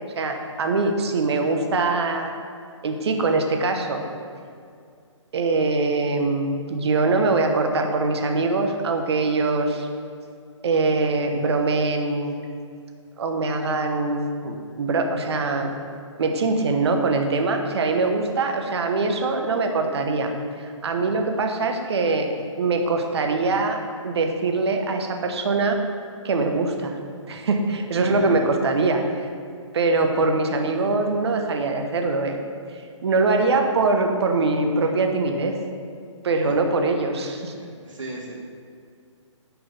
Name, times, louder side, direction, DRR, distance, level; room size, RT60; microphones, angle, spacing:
voice 1, 0.1-2.3 2.8-4.0 5.3-9.9 10.6-12.3 13.2-15.7 16.2-20.3 20.6-22.3 22.6-23.8 24.0-25.8 26.2-27.0 27.3-29.0 29.7-32.4 33.0-35.6 36.2-37.5, right 3 dB, 55° right, 4 dB, 1.1 m, -23 dB
voice 2, 27.9-28.4 36.4-36.5 37.5-38.3, right 2 dB, 75° right, -3 dB, 2.4 m, -37 dB
6.2 x 5.8 x 7.2 m, 2.3 s
hypercardioid pair, 150°, 16 cm